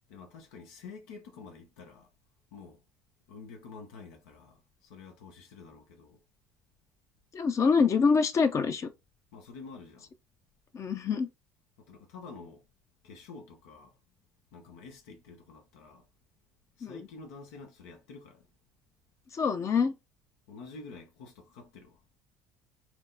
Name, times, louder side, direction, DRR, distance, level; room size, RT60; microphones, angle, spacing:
voice 1, 0.1-2.1 2.5-2.8 3.3-6.2 9.3-10.1 11.8-12.7 13.0-14.0 14.5-16.0 16.8-18.5 20.5-22.0, left 4 dB, 85° left, 0.9 m, -48 dB
voice 2, 7.3-8.9 10.7-11.3 16.8-17.1 19.3-19.9, left 5 dB, 40° left, 0.6 m, -25 dB
4.5 x 2.0 x 4.0 m
supercardioid pair, 80°, 8 cm